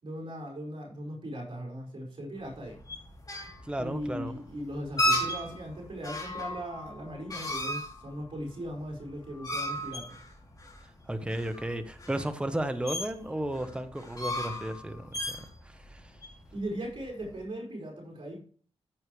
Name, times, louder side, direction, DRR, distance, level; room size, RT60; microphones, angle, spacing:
voice 1, 0.0-2.8 3.8-10.2 16.5-18.5, equal, 50° right, 4.8 m, -38 dB
sound 1, 2.5-17.4, equal, 35° left, 3.2 m, -35 dB
voice 2, 3.6-4.3 11.1-16.2, right 1 dB, 10° right, 1.0 m, -34 dB
14.5 x 6.4 x 3.2 m
wide cardioid pair, 100°, 11 cm